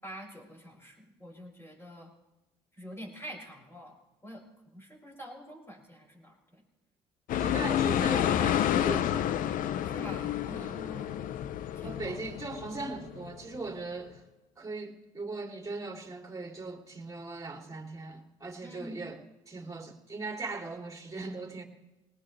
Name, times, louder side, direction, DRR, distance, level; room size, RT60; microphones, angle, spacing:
voice 1, 0.0-2.1 2.8-4.0 4.2-4.4 4.7-6.6 7.4-7.8 9.8-11.2 11.8-12.2 18.6-19.0, equal, 15° left, 6.9 m, -46 dB
sound 1, 7.3-13.6, left 10 dB, 65° left, 0.8 m, -30 dB
voice 2, 7.4-9.4 10.5-10.7 11.8-14.2 14.6-21.6, right 3 dB, 20° right, 3.2 m, -39 dB
20.0 x 19.5 x 3.4 m
hypercardioid pair, 65°, 15 cm